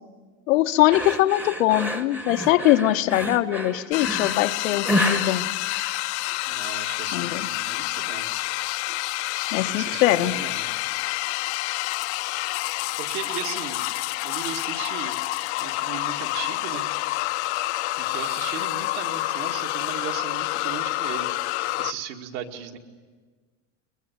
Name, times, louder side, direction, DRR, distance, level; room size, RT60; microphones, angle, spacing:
voice 1, 0.5-5.5 7.1-7.5 9.5-10.3, left 15 dB, 85° left, 9 dB, 1.1 m, -22 dB
sound 1, 0.9-6.4, left 1 dB, 5° right, 1.0 m, -29 dB
sound 2, 3.9-21.9, left 19 dB, 60° left, 0.7 m, -28 dB
voice 2, 6.4-8.3 9.6-10.6 13.0-13.8 14.2-15.1 15.6-16.8 18.0-22.8, right 8 dB, 60° right, 3 dB, 2.2 m, -36 dB
22.5 x 22.0 x 9.5 m, 1.4 s
supercardioid pair, 165°, 39 cm